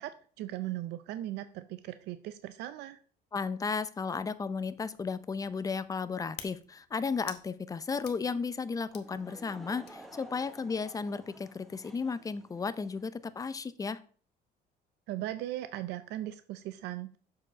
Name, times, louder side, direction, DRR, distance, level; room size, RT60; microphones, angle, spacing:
voice 1, 0.0-3.0 15.1-17.2, right 14 dB, 80° right, 12 dB, 0.5 m, -38 dB
voice 2, 3.3-14.0, left 5 dB, 20° left, 14 dB, 0.5 m, -34 dB
sound 1, 4.4-10.7, left 10 dB, 80° left, 1.0 m, -53 dB
Laughter / Crowd, 8.9-13.1, right 1 dB, ahead, 1.1 m, -52 dB
7.1 x 4.8 x 4.3 m, 0.43 s
cardioid pair, 110°, 17 cm